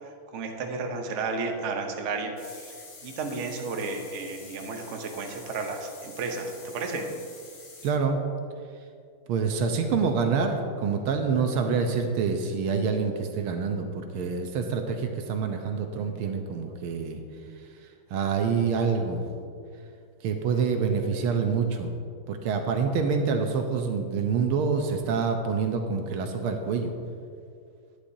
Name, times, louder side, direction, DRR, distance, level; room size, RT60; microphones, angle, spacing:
voice 1, 0.0-7.2 15.9-16.8, right 3 dB, 65° right, 3 dB, 0.7 m, -33 dB
sound 1, 2.4-7.9, left 3 dB, 55° left, 1.6 m, -47 dB
voice 2, 7.8-8.2 9.3-17.2 18.1-19.2 20.2-21.9 22.3-26.9, right 5 dB, 80° right, 5 dB, 1.6 m, -26 dB
11.5 x 10.0 x 2.7 m, 2.2 s
omnidirectional pair, 2.4 m